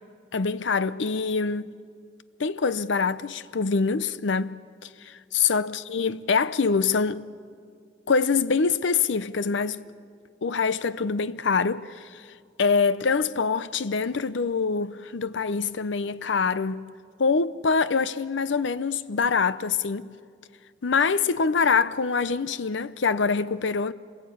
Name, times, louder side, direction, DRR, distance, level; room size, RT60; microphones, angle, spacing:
voice 1, 0.3-1.7 2.4-4.6 4.8-7.3 8.1-9.9 10.4-12.3 12.6-16.9 17.2-20.1 20.8-23.9, left 5 dB, 75° left, 0.6 m, -25 dB
27.0 x 20.5 x 8.5 m
head